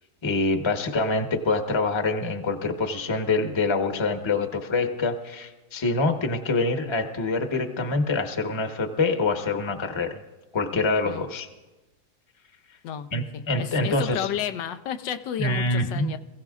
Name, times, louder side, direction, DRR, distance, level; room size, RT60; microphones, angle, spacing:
voice 1, 0.2-10.2 10.5-11.5 13.1-14.3 15.4-16.1, left 3 dB, 20° left, 4 dB, 0.8 m, -25 dB
voice 2, 13.3-16.2, left 10 dB, 90° left, 8 dB, 1.4 m, -32 dB
26.5 x 16.0 x 2.4 m, 1.1 s
omnidirectional pair, 1.9 m